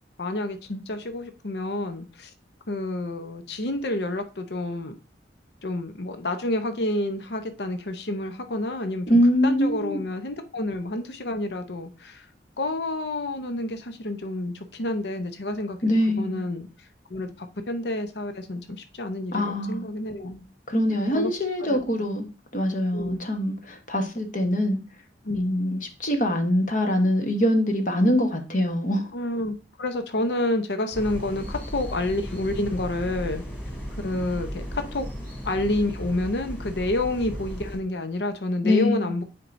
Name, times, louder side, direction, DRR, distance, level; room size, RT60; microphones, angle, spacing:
voice 1, 0.2-2.3 2.7-4.9 5.6-12.3 12.6-15.8 16.2-16.7 17.1-20.4 20.9-21.3 21.6-21.8 22.9-23.2 25.2-25.4 29.1-33.4 34.0-35.1 35.4-39.2, left 1 dB, 65° left, 0.8 m, -29 dB
voice 2, 9.1-10.0 15.8-16.4 19.3-19.8 20.7-22.3 22.5-24.8 25.3-29.1 38.6-39.1, left 1 dB, 45° left, 1.2 m, -23 dB
sound 1, 30.9-37.8, equal, 10° left, 2.6 m, -35 dB
9.2 x 4.6 x 2.6 m
head